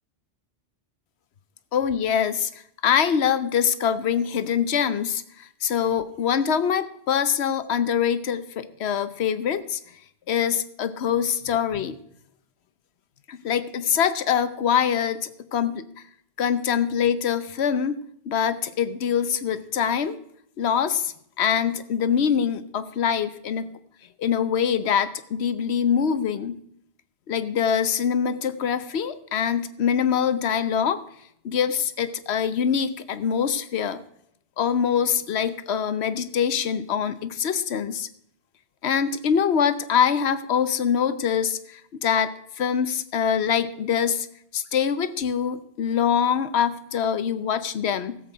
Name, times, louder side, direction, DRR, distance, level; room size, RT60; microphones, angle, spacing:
voice 1, 1.7-9.8 10.3-12.0 13.3-15.8 16.4-18.0 18.2-20.2 20.6-23.7 24.2-26.6 27.3-31.0 31.4-34.0 34.6-38.1 38.8-44.3 44.5-48.2, left 8 dB, 70° left, 13 dB, 1.0 m, -24 dB
16.5 x 7.6 x 4.6 m, 0.69 s
omnidirectional pair, 1.1 m